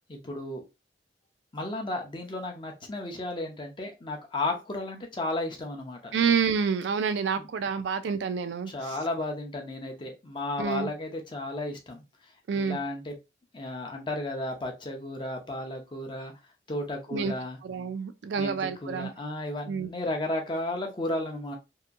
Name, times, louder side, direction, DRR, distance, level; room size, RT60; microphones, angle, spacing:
voice 1, 0.1-0.6 1.5-6.1 7.4-7.5 8.7-12.0 12.6-13.1 13.5-16.3 16.7-17.6 18.3-21.6, left 2 dB, 25° left, 0.6 m, -33 dB
voice 2, 6.1-9.0 10.6-10.9 12.5-12.8 17.1-17.3 17.6-19.1 19.7-19.9, right 6 dB, 80° right, 0.4 m, -28 dB
2.8 x 2.5 x 2.4 m
head